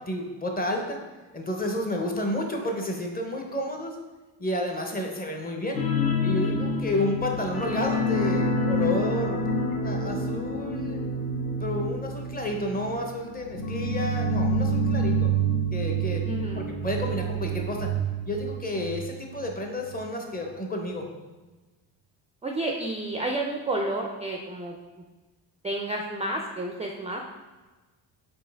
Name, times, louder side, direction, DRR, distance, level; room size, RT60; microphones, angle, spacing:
voice 1, 0.1-1.0 1.3-4.0 4.4-5.8 6.2-9.5 9.8-11.0 11.6-15.3 15.7-16.3 16.5-17.9 18.3-21.1, left 1 dB, 20° left, 2 dB, 0.7 m, -31 dB
sound 1, 5.7-19.0 19.3-19.5 19.9-20.0, right 1 dB, 55° left, 0.7 m, -27 dB
voice 2, 16.3-16.7 22.4-24.8 25.6-27.2, right 2 dB, 15° right, 1 dB, 0.4 m, -30 dB
4.4 x 3.3 x 3.4 m, 1.2 s
cardioid pair, 75°, 45 cm